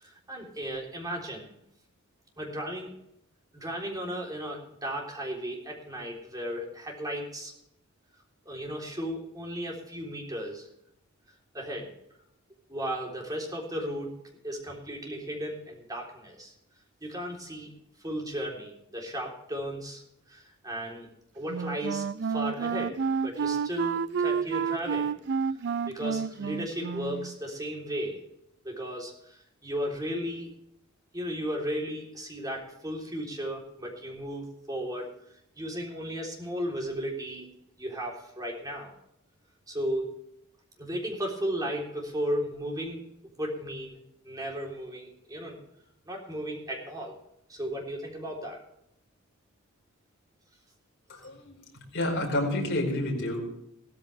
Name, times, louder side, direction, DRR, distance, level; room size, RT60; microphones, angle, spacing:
voice 1, 0.0-1.5 2.4-2.9 3.5-7.5 8.5-10.7 11.5-11.9 12.7-14.1 14.4-16.5 17.0-17.7 18.0-20.0 20.3-21.1 21.3-22.9 23.2-25.1 25.9-28.2 28.6-30.5 31.1-35.1 35.6-37.5 37.8-38.9 39.7-40.1 40.8-43.0 43.4-44.0 44.2-45.6 46.1-47.2 47.5-48.6, equal, 20° right, -1 dB, 3.6 m, -35 dB
Wind instrument woodwind instrument, 21.5-27.4, right 6 dB, 55° right, 0.4 m, -30 dB
voice 2, 51.2-51.5 51.9-53.4, left 1 dB, 55° left, -1 dB, 4.9 m, -28 dB
16.5 x 14.0 x 3.4 m, 0.78 s
head